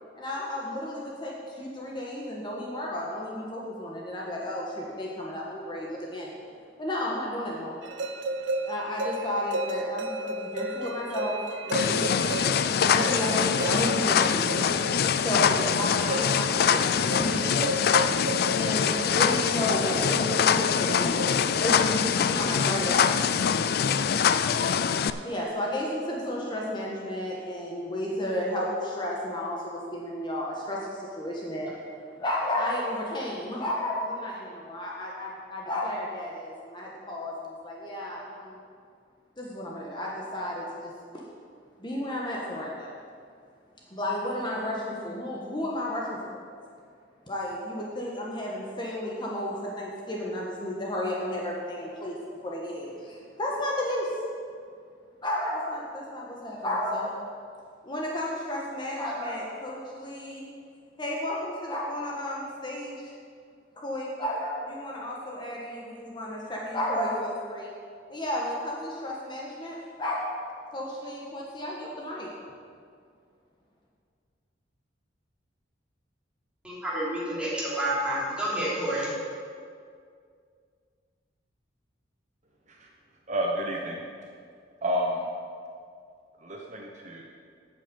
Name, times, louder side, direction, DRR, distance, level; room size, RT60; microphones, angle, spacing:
voice 1, 0.1-6.3 6.8-7.8 8.7-11.4 11.7-12.3 12.8-14.8 15.2-17.8 18.6-21.2 21.6-23.0 25.2-31.7 32.2-38.6 39.4-40.9 41.8-42.9 43.9-46.4 47.3-52.2 52.4-54.1 55.2-57.1 57.8-60.5 61.0-63.1 63.8-67.7 68.1-70.2 70.7-72.3, left 1 dB, 25° left, -3 dB, 1.3 m, -32 dB
sound 1, 7.8-22.4, right 1 dB, 80° right, 0.8 m, -34 dB
sound 2, 11.7-25.1, left 7 dB, 55° left, 0.4 m, -24 dB
voice 2, 76.6-79.1, right 1 dB, 5° right, -8 dB, 3.1 m, -29 dB
voice 3, 83.3-84.0 84.8-85.2 86.4-87.2, equal, 40° right, 0 dB, 1.0 m, -30 dB
8.9 x 7.6 x 6.9 m, 2.2 s
head